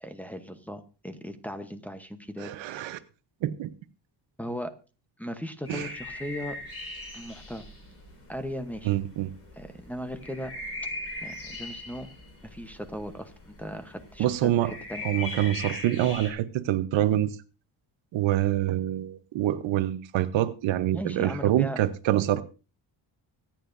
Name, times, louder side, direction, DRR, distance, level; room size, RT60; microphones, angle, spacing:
voice 1, 0.0-3.0 4.4-4.7 5.2-6.6 7.1-7.6 8.3-9.0 9.6-10.5 11.2-12.1 12.4-15.4 20.9-21.8, equal, 5° left, 5 dB, 0.9 m, -37 dB
voice 2, 2.4-3.0 3.4-3.7 5.7-5.9 8.8-9.3 14.2-14.7 15.0-17.3 18.1-22.4, right 13 dB, 90° right, 12 dB, 1.0 m, -26 dB
sound 1, 5.7-16.3, left 2 dB, 30° left, 5.1 m, -40 dB
24.5 x 9.1 x 2.6 m, 0.33 s
cardioid pair, 135°, 44 cm